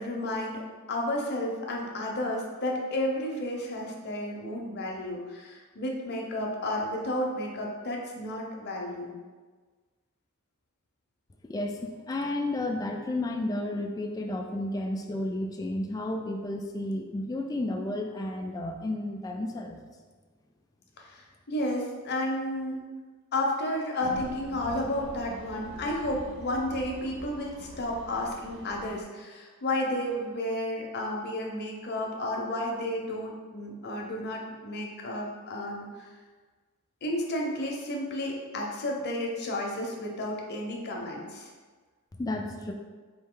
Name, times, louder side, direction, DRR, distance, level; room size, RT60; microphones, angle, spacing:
voice 1, 0.0-9.1 21.0-22.8 23.3-35.9 37.0-41.5, left 1 dB, 50° left, 0 dB, 0.7 m, -32 dB
voice 2, 11.4-19.8 42.1-42.7, left 1 dB, 15° left, 3 dB, 0.3 m, -32 dB
sound 1, 24.0-29.0, right 2 dB, 55° right, 0.4 m, -44 dB
4.1 x 2.7 x 3.7 m, 1.4 s
head